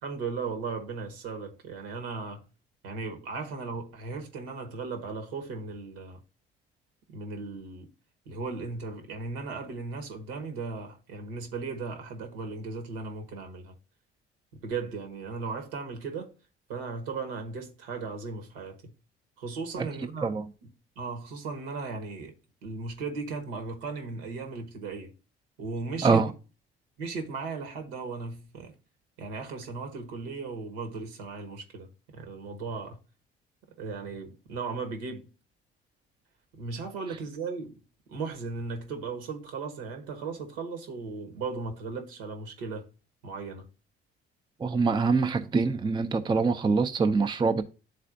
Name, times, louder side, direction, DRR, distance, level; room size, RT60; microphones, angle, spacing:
voice 1, 0.0-2.5 2.8-6.2 7.1-7.9 8.3-13.7 14.5-16.3 16.7-18.9 19.4-20.3 21.0-22.3 22.6-25.1 25.6-26.2 27.0-28.7 29.2-33.0 33.8-35.3 36.5-37.8 38.1-42.9 43.2-43.7, right 4 dB, 70° right, 1.2 m, -36 dB
voice 2, 44.6-47.6, right 4 dB, 15° right, 0.6 m, -24 dB
11.0 x 4.1 x 2.4 m
figure-of-eight pair, 50°, 30 cm